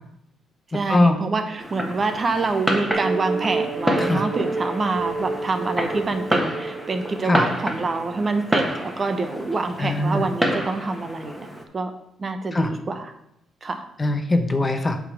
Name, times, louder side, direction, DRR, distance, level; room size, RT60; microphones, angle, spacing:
voice 1, 0.7-11.9 12.2-13.1 13.6-13.8, right 3 dB, 35° right, 7 dB, 1.0 m, -26 dB
Fireworks, 1.6-11.6, equal, 5° right, 1.5 m, -29 dB
sound 1, 2.9-7.6, right 4 dB, 60° right, 1.9 m, -30 dB
voice 2, 9.8-10.2 12.5-12.7 14.0-15.0, left 2 dB, 25° left, 7 dB, 0.8 m, -21 dB
8.1 x 3.9 x 6.2 m, 0.77 s
cardioid pair, 90°, 0 cm